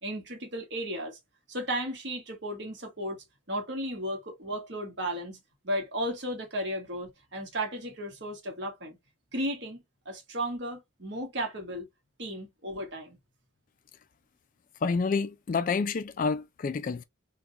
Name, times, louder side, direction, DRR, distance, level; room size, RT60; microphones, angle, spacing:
voice 1, 0.0-1.2 1.5-5.4 5.6-9.0 9.3-11.9 12.2-13.2, equal, 60° right, 1.2 m, -34 dB
voice 2, 14.8-17.0, left 4 dB, 45° left, 0.3 m, -28 dB
3.7 x 2.3 x 2.7 m
head